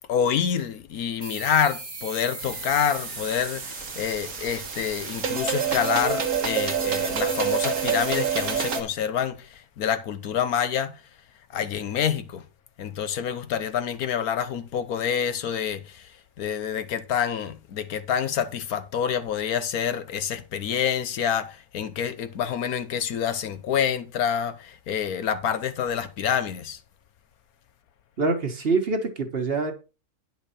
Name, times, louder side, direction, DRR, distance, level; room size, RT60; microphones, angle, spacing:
voice 1, 0.1-11.0 11.5-12.4 12.8-16.1 16.4-26.8, left 8 dB, 80° left, 1.3 m, -27 dB
sound 1, 1.2-6.4, right 3 dB, 25° right, 1.1 m, -40 dB
sound 2, 2.4-8.8, right 6 dB, 70° right, 2.0 m, -28 dB
voice 2, 28.2-29.7, right 3 dB, 40° right, 1.4 m, -25 dB
10.0 x 6.3 x 4.2 m
omnidirectional pair, 1.6 m